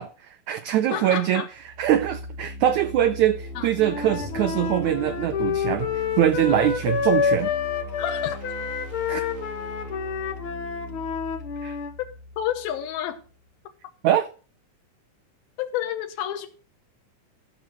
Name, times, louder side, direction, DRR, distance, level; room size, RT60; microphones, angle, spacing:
voice 1, 0.0-1.4 1.8-7.5 9.1-9.3 11.6-11.8 14.0-14.3, right 11 dB, 80° right, 1.7 m, -23 dB
voice 2, 0.9-1.5 3.6-3.7 8.0-8.4 12.4-13.2 15.6-16.5, left 11 dB, 85° left, 2.9 m, -29 dB
sound 1, 1.5-13.3, left 1 dB, 40° right, 1.2 m, -39 dB
Wind instrument woodwind instrument, 3.8-11.9, left 6 dB, 60° left, 1.3 m, -28 dB
sound 2, 4.0-6.2, right 2 dB, 60° right, 1.9 m, -44 dB
13.5 x 6.3 x 6.2 m
omnidirectional pair, 4.2 m